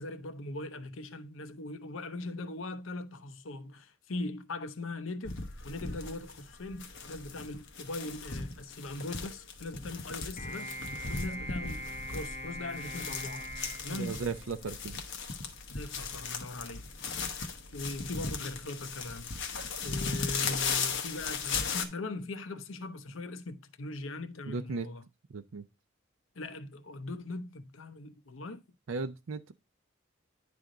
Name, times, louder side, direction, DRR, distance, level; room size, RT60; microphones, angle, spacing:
voice 1, 0.0-10.8 11.1-13.5 13.8-14.2 15.7-16.8 17.7-19.4 19.8-25.0 26.4-28.6, left 2 dB, 80° left, 0.7 m, -40 dB
sound 1, 5.2-21.9, left 5 dB, 65° left, 1.0 m, -37 dB
sound 2, 10.4-14.9, equal, 35° left, 1.0 m, -42 dB
voice 2, 13.9-15.0 24.5-24.9 25.3-25.6 28.9-29.5, right 4 dB, 90° right, 0.5 m, -36 dB
10.0 x 3.5 x 3.8 m
head